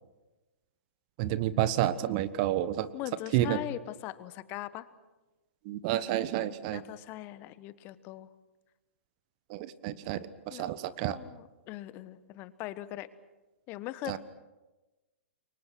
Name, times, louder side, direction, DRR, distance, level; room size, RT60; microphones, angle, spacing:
voice 1, 1.2-2.9 3.3-3.6 5.6-6.8 9.5-11.2 14.0-14.2, right 13 dB, 40° right, 15 dB, 1.2 m, -30 dB
voice 2, 2.9-4.9 6.7-8.3 10.5-10.7 11.0-13.1 13.7-14.2, left 15 dB, 30° left, 15 dB, 1.2 m, -40 dB
28.5 x 24.0 x 6.2 m, 1.1 s
figure-of-eight pair, 115°, 7 cm